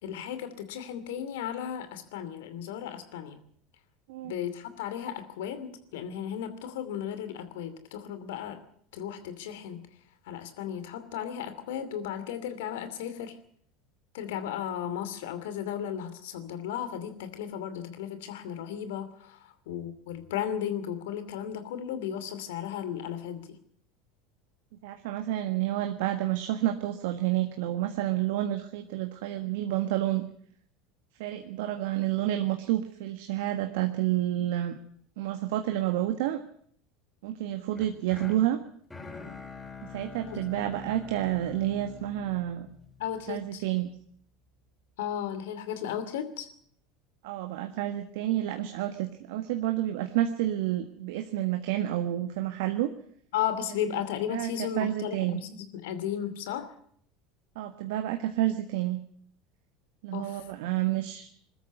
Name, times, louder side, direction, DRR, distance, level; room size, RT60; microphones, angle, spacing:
voice 1, 0.0-3.4 4.2-8.6 8.9-9.8 10.2-13.4 14.1-23.6 40.3-40.7 43.0-43.6 45.0-46.5 53.3-56.7 60.1-60.4, left 9 dB, 70° left, 11 dB, 2.7 m, -35 dB
voice 2, 24.8-30.2 31.2-34.7 35.2-36.4 37.2-38.6 39.8-42.7 43.3-43.9 47.2-52.9 53.9-54.0 54.3-54.5 54.7-55.4 57.5-59.0 60.0-61.3, right 13 dB, 70° right, 6 dB, 1.5 m, -29 dB
sound 1, 37.7-43.8, left 5 dB, 15° left, 7.0 m, -45 dB
21.5 x 13.5 x 9.5 m, 0.64 s
hypercardioid pair, 80°, 0 cm